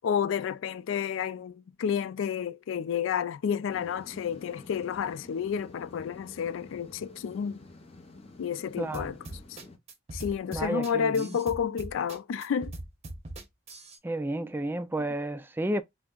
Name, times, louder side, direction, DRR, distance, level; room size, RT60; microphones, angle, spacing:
voice 1, 0.0-7.7 8.4-9.2 9.5-9.6 10.1-12.7, left 7 dB, 80° left, 0.3 m, -30 dB
sound 1, 3.7-9.8, left 2 dB, 30° left, 0.7 m, -50 dB
voice 2, 8.8-9.1 10.5-11.4 14.0-15.8, right 1 dB, 10° right, 0.3 m, -31 dB
sound 2, 8.9-14.0, right 1 dB, 35° right, 0.7 m, -41 dB
5.8 x 2.0 x 2.2 m
head